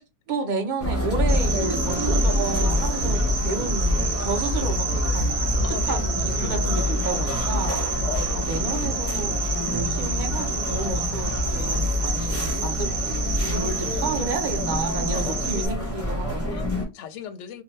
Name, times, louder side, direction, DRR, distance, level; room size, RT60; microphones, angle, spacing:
voice 1, 0.3-5.6 5.8-7.7 8.3-9.3 9.7-16.6, right 3 dB, 45° right, 0.6 m, -31 dB
sound 1, 0.8-16.8, left 1 dB, 15° left, 0.7 m, -26 dB
Cricket, 1.3-15.7, right 5 dB, 70° right, 1.0 m, -31 dB
voice 2, 5.6-6.1 8.0-9.2 11.5-11.9 15.0-15.8 16.4-17.6, left 8 dB, 65° left, 0.8 m, -38 dB
2.7 x 2.2 x 3.1 m
omnidirectional pair, 1.5 m